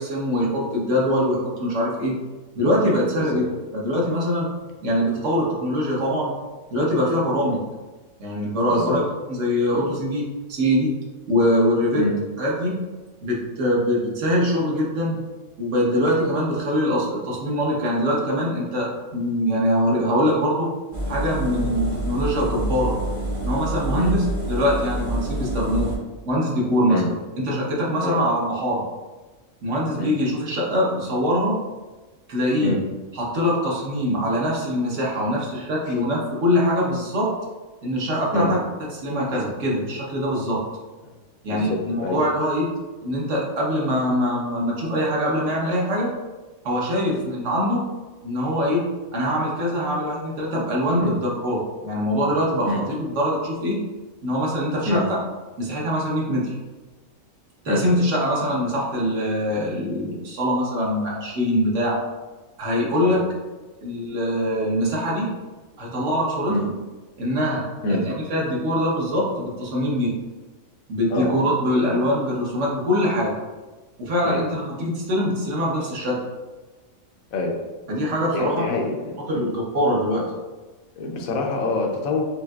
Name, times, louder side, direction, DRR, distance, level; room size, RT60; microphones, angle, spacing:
voice 1, 0.0-2.1 2.5-3.5 3.8-4.5 4.8-6.3 6.7-7.6 8.2-9.0 9.3-10.9 11.3-12.1 12.4-12.8 13.2-15.2 15.6-20.7 21.1-23.0 23.4-25.9 26.3-27.0 27.4-28.8 29.6-31.6 32.3-32.8 33.1-37.3 37.8-38.6 39.0-40.6 41.4-42.7 43.0-46.1 46.6-47.8 48.2-53.8 54.2-55.1 55.6-56.6 57.6-62.0 62.6-63.2 63.8-65.3 65.8-66.6 67.2-67.6 67.9-70.1 70.9-73.3 74.0-76.2 77.9-78.8 79.3-80.3, equal, 60° right, -4 dB, 1.2 m, -23 dB
Engine, 20.9-26.0, right 1 dB, 25° right, 0.3 m, -27 dB
voice 2, 41.5-42.2 47.1-47.2 51.0-51.1 52.6-52.8 54.8-55.0 57.7-57.8 63.0-63.2 66.5-66.6 67.8-68.0 71.1-71.3 74.2-74.4 77.3-77.5 78.3-79.5 81.0-82.2, left 2 dB, 80° left, 1 dB, 1.1 m, -25 dB
5.5 x 2.6 x 2.3 m, 1.2 s
omnidirectional pair, 1.4 m